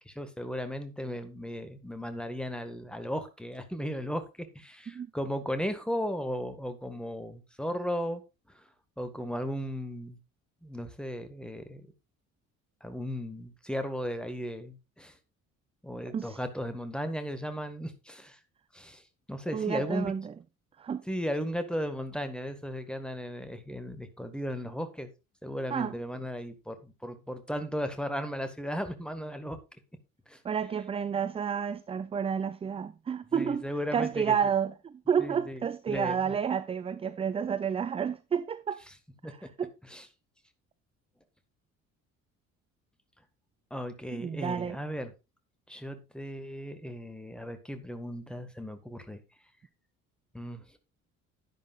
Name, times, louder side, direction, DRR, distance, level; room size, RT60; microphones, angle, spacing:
voice 1, 0.0-8.2 8.5-8.6 9.0-10.2 10.6-11.9 12.8-15.2 15.8-18.4 18.7-19.0 19.3-20.1 21.1-25.1 25.4-29.6 30.3-30.4 33.3-34.4 35.2-35.6 35.9-36.4 39.2-39.3 39.9-40.1 43.7-45.1 45.7-49.2 50.3-50.8, equal, ahead, 1.8 m, -36 dB
voice 2, 19.5-20.3 20.8-21.0 25.7-26.0 30.4-33.6 33.9-38.8 39.2-39.7 44.2-44.8, right 7 dB, 15° right, 0.4 m, -30 dB
11.0 x 10.5 x 2.5 m
figure-of-eight pair, 50°, 42 cm